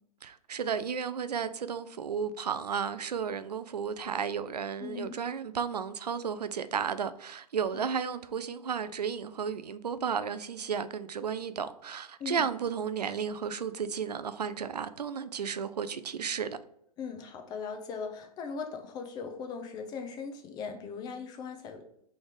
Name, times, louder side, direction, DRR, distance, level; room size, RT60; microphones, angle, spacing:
voice 1, 0.2-16.6, right 7 dB, 90° right, 0.4 m, -33 dB
voice 2, 4.8-5.2 7.7-8.1 12.2-12.5 17.0-21.8, left 5 dB, 20° left, 0.6 m, -39 dB
4.2 x 3.3 x 3.5 m
hypercardioid pair, 130°, 20 cm